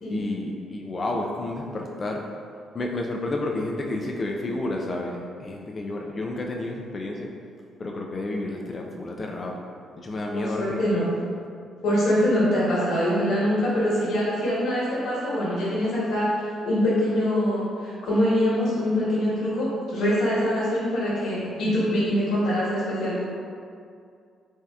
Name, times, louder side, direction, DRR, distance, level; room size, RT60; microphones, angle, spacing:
voice 1, 0.1-2.2 2.7-7.3 7.8-9.6 10.0-11.1, left 2 dB, 35° left, 0 dB, 0.3 m, -30 dB
voice 2, 10.3-11.1 11.8-16.3 16.6-23.2, equal, 70° left, -9 dB, 1.2 m, -24 dB
3.3 x 2.7 x 2.3 m, 2.3 s
cardioid pair, 90°, 0 cm